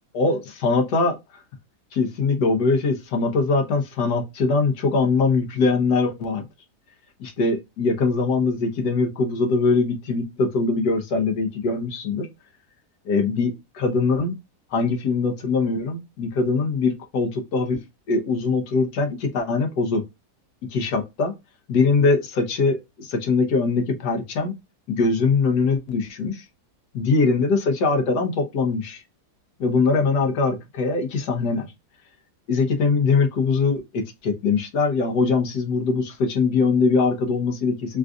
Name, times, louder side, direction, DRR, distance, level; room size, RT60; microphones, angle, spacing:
voice 1, 0.1-1.4 1.9-6.4 7.2-12.3 13.0-14.3 14.7-17.8 18.1-20.0 20.7-21.3 21.7-24.5 24.9-26.4 26.9-29.0 29.6-31.7 32.5-38.0, left 4 dB, 75° left, 1.4 m, -22 dB
3.8 x 2.5 x 2.3 m
omnidirectional pair, 1.8 m